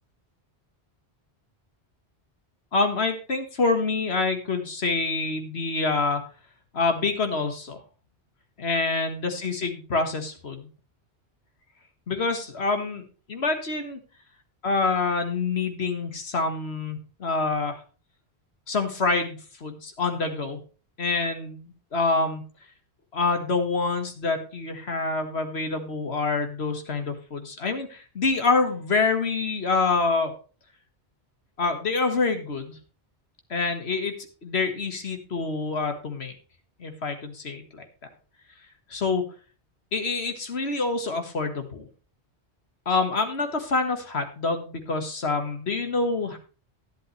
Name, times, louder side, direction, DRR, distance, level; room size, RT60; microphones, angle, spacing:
voice 1, 2.7-6.2 6.7-7.8 8.6-10.7 12.1-14.0 14.6-17.8 18.7-20.6 21.0-22.4 23.1-30.3 31.6-32.8 33.5-34.1 34.4-36.3 36.8-37.8 38.9-39.2 39.9-41.9 42.9-46.4, left 3 dB, 75° left, 6 dB, 1.9 m, -26 dB
11.5 x 11.0 x 3.3 m, 0.35 s
omnidirectional pair, 1.1 m